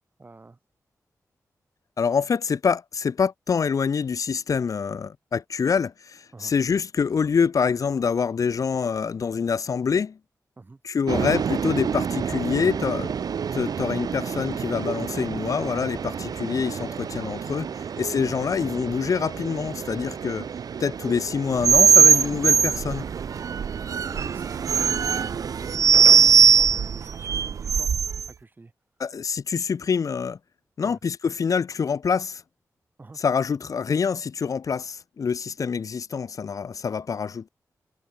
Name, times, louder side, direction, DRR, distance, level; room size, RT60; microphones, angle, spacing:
voice 1, 0.2-0.6 6.3-6.5 10.6-10.8 17.6-17.9 23.8-28.7 30.8-31.0 33.0-33.2, right 3 dB, 30° right, 7.2 m, -46 dB
voice 2, 2.0-10.2 10.8-13.1 13.5-17.7 18.0-20.5 20.8-23.0 29.0-30.4 30.8-32.4 33.2-37.5, left 6 dB, 60° left, 1.2 m, -26 dB
sound 1, 11.1-25.8, right 7 dB, 85° right, 3.2 m, -32 dB
sound 2, 21.6-28.3, right 7 dB, 60° right, 0.3 m, -19 dB
wide cardioid pair, 120°, 6 cm